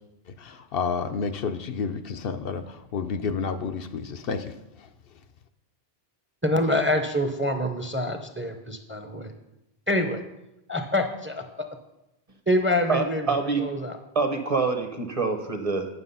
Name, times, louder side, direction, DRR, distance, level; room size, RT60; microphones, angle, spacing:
voice 1, 0.4-4.5, left 5 dB, 70° left, 8 dB, 0.8 m, -30 dB
voice 2, 6.4-9.3 9.9-10.2 10.7-11.4 12.5-13.2 13.6-14.0, left 1 dB, 15° right, 6 dB, 0.6 m, -25 dB
voice 3, 12.9-13.7 14.1-15.9, right 4 dB, 35° right, 6 dB, 0.9 m, -26 dB
9.6 x 6.2 x 5.5 m, 0.91 s
omnidirectional pair, 1.0 m